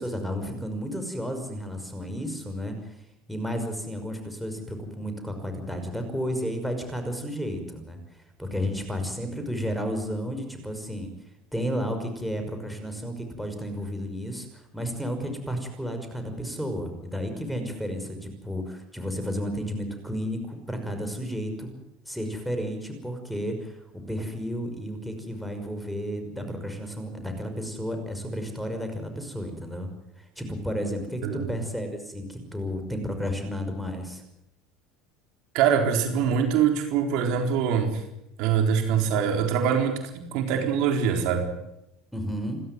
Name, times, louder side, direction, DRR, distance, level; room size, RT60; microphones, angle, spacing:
voice 1, 0.0-3.0 3.3-8.0 8.4-11.1 11.5-21.7 22.1-23.8 24.1-29.9 30.2-34.2 42.1-42.6, equal, ahead, 6 dB, 5.8 m, -32 dB
voice 2, 35.5-38.0 38.4-41.5, right 7 dB, 65° right, 5 dB, 3.9 m, -24 dB
28.5 x 13.0 x 9.4 m, 0.85 s
supercardioid pair, 95°, 0 cm